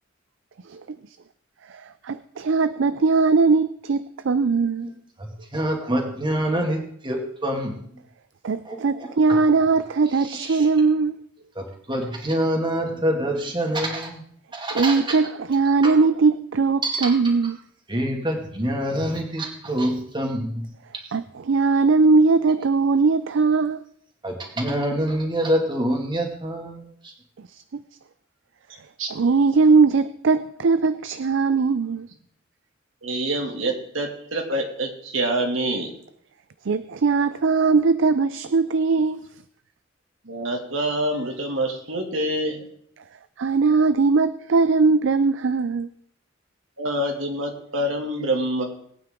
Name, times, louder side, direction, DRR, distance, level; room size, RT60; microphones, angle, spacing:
voice 1, 1.7-4.9 8.4-11.2 14.7-17.6 21.1-23.8 27.5-27.8 29.1-32.1 36.7-39.2 43.4-45.9, right 4 dB, 70° right, 13 dB, 0.5 m, -20 dB
voice 2, 5.2-8.0 8.6-9.4 10.1-10.7 11.6-14.2 14.5-15.2 15.8-16.0 16.8-17.3 17.9-20.7 20.9-21.0 24.2-27.1, right 1 dB, 25° right, 2 dB, 2.3 m, -26 dB
voice 3, 33.0-35.9 40.2-42.7 46.8-48.6, right 1 dB, 85° right, 2 dB, 2.5 m, -26 dB
21.0 x 9.0 x 3.8 m, 0.66 s
head